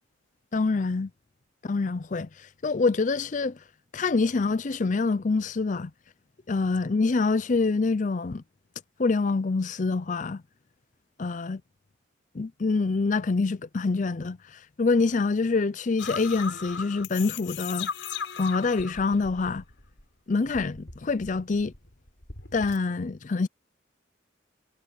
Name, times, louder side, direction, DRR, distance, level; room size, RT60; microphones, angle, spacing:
voice 1, 0.5-1.1 1.6-2.3 2.6-3.6 3.9-5.9 6.5-8.4 9.0-10.4 11.2-11.6 12.3-14.4 14.8-17.9 18.4-19.6 20.3-21.7 22.5-23.5, left 4 dB, 40° left, 0.5 m, -26 dB
sound 1, 16.0-20.0 20.3-22.8, left 6 dB, 90° left, 7.1 m, -38 dB
head